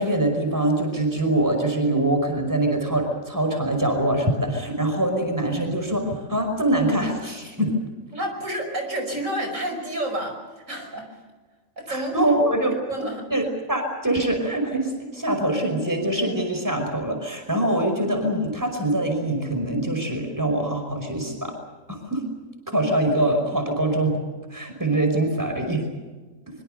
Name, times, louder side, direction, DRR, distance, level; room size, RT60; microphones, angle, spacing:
voice 1, 0.0-7.7 11.9-21.5 21.9-22.2 22.7-24.2 24.5-25.8, right 1 dB, 15° right, 4 dB, 5.3 m, -24 dB
voice 2, 8.1-10.4 10.7-11.2 11.8-13.2, right 1 dB, 75° right, 4 dB, 5.8 m, -30 dB
25.0 x 24.0 x 6.8 m, 1.3 s
omnidirectional pair, 1.4 m